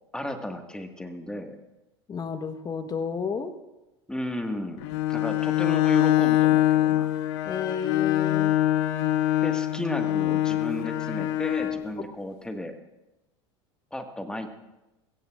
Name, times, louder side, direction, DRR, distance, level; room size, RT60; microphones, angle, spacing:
voice 1, 0.1-1.6 4.1-7.1 9.4-12.8 13.9-14.5, left 1 dB, 5° left, 5 dB, 1.7 m, -34 dB
voice 2, 2.1-3.5 7.4-8.6, left 6 dB, 25° left, 9 dB, 1.2 m, -31 dB
Bowed string instrument, 4.8-11.9, left 14 dB, 65° left, 0.9 m, -24 dB
22.0 x 16.0 x 2.5 m, 1.0 s
hypercardioid pair, 85°, 15 cm